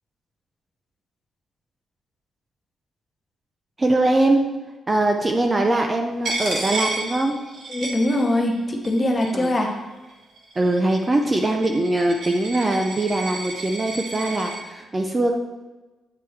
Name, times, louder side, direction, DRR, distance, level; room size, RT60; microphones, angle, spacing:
voice 1, 3.8-4.4 4.9-7.4 9.3-9.5 10.6-15.3, right 2 dB, 20° right, 3 dB, 0.4 m, -21 dB
Coin (dropping), 6.2-8.6 8.8-9.7 10.4-14.6, right 2 dB, 50° right, 1.2 m, -32 dB
voice 2, 7.7-9.7, left 1 dB, 20° left, 2 dB, 0.8 m, -22 dB
8.5 x 4.5 x 3.2 m, 1.2 s
wide cardioid pair, 170°, 0 cm